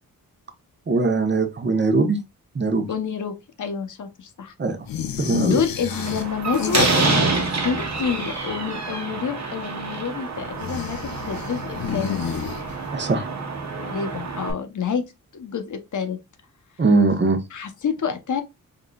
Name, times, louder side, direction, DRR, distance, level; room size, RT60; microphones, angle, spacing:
voice 1, 0.9-2.2 2.5-2.9 4.6-4.8 5.2-5.6 12.9-13.3 16.8-17.4, right 3 dB, 30° right, 0.9 m, -20 dB
voice 2, 2.9-4.5 5.2-11.0 11.3-12.2 13.8-15.0 15.3-16.2 17.5-18.4, left 7 dB, 60° left, 0.8 m, -28 dB
sound 1, 4.9-7.5 7.7-8.5 10.5-13.0, left 8 dB, 85° left, 0.6 m, -30 dB
Slam, 5.9-14.5, right 3 dB, 50° right, 1.2 m, -27 dB
3.8 x 3.8 x 2.3 m
wide cardioid pair, 100°, 34 cm